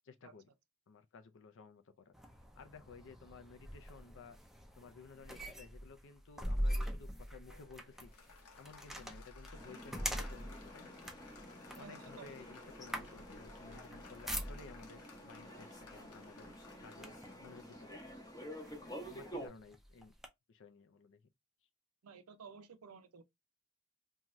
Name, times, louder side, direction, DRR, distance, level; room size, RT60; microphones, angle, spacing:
voice 1, 0.0-0.5 0.9-2.1 2.6-4.4 4.8-8.1 8.6-10.9 11.8-16.5 16.8-18.1 19.1-20.1 20.5-21.2, left 4 dB, 60° left, 0.5 m, -55 dB
sound 1, 2.1-15.0 15.8-16.0 16.4-17.4 18.1-18.2 18.6-20.3, equal, ahead, 0.4 m, -43 dB
Applause, 7.5-19.4, left 5 dB, 80° left, 0.8 m, -60 dB
sound 2, 9.5-19.5, equal, 15° left, 0.7 m, -50 dB
voice 2, 11.8-12.4 22.0-23.2, right 5 dB, 75° right, 0.5 m, -53 dB
2.6 x 2.3 x 3.0 m
head